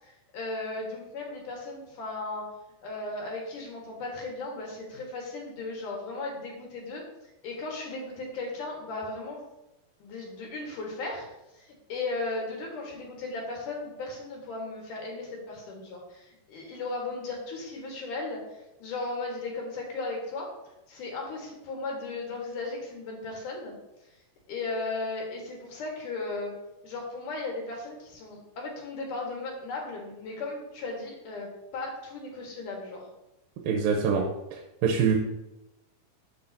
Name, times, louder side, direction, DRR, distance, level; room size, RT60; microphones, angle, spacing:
voice 1, 0.0-2.5 2.8-7.0 7.4-9.4 10.0-11.3 11.5-20.5 20.9-23.7 24.5-26.5 26.8-33.1, left 3 dB, 65° left, -1 dB, 3.0 m, -36 dB
voice 2, 33.6-34.2 34.5-35.2, right 6 dB, 85° right, 1 dB, 2.6 m, -25 dB
12.5 x 5.3 x 2.8 m, 0.93 s
omnidirectional pair, 4.1 m